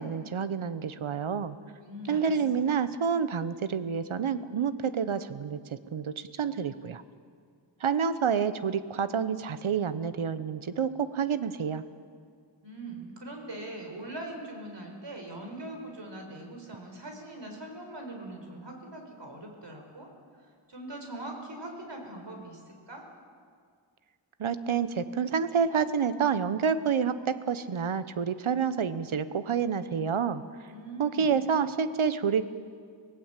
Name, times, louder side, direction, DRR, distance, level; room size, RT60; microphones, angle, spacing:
voice 1, 0.0-1.6 2.1-7.0 7.8-11.8 24.4-30.4 31.0-32.5, right 6 dB, 85° right, 13 dB, 1.1 m, -28 dB
voice 2, 1.8-2.7 12.6-20.1 20.7-23.0 30.7-31.3, right 1 dB, 60° right, 2 dB, 4.9 m, -42 dB
24.5 x 17.5 x 8.3 m, 2.1 s
wide cardioid pair, 55°, 47 cm